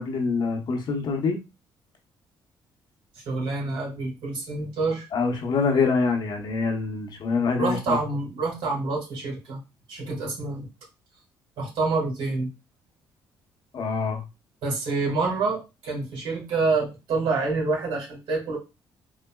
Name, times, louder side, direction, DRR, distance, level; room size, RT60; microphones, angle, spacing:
voice 1, 0.0-1.4 5.1-8.0 13.7-14.2, left 4 dB, 55° left, 3 dB, 0.8 m, -25 dB
voice 2, 3.3-5.1 7.6-9.6 9.9-10.7 11.6-12.5 14.6-18.6, right 3 dB, 75° right, -1 dB, 1.6 m, -27 dB
3.8 x 2.1 x 2.3 m, 0.26 s
cardioid pair, 80°, 9 cm